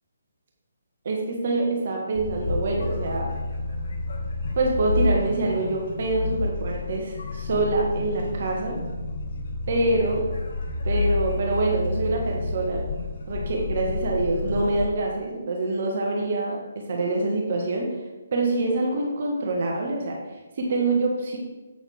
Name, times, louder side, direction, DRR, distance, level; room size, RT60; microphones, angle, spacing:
voice 1, 1.0-3.3 4.5-8.8 9.7-10.2 10.8-12.8 13.3-17.9 18.3-20.2 20.6-21.4, right 2 dB, 55° right, -1 dB, 1.6 m, -25 dB
sound 1, 2.1-14.9, left 3 dB, 55° left, 1.8 m, -29 dB
8.1 x 7.1 x 3.5 m, 1.2 s
hypercardioid pair, 150°, 0 cm